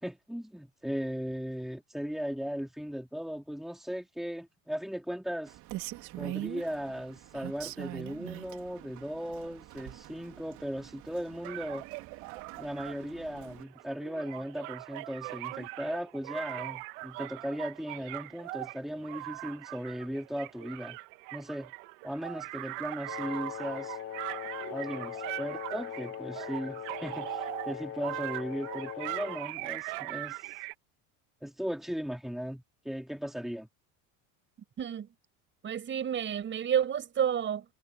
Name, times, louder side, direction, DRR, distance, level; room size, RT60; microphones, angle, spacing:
voice 1, 0.0-5.6 6.2-11.9 12.6-21.0 21.3-21.7 22.0-24.0 24.7-30.5 31.4-33.7, equal, ahead, 3.5 m, -37 dB
Rain, 5.5-13.6, right 16 dB, 55° right, 3.6 m, -44 dB
sound 1, 11.4-30.7, right 22 dB, 75° right, 2.0 m, -41 dB
Wind instrument woodwind instrument, 23.1-29.5, left 11 dB, 40° left, 2.2 m, -41 dB
voice 2, 34.8-35.1 35.6-37.7, right 9 dB, 30° right, 5.7 m, -30 dB
cardioid pair, 135°, 37 cm